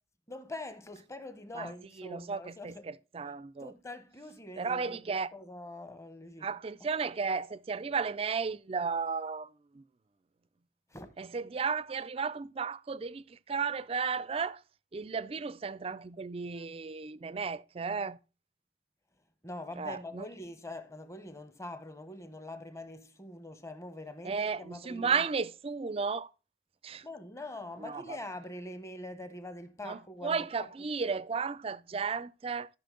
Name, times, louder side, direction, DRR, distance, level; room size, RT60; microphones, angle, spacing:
voice 1, 0.3-2.9 3.2-3.3 3.6-5.0 5.3-6.5 10.9-11.1 19.4-25.3 27.0-30.5, left 2 dB, 15° left, 0.9 m, -44 dB
voice 2, 2.0-3.7 4.6-5.3 6.4-9.8 11.2-14.6 14.9-18.2 19.8-20.3 24.2-26.3 26.8-27.0 27.8-28.2 29.8-32.7, right 5 dB, 30° right, 0.4 m, -34 dB
14.0 x 6.0 x 3.8 m
head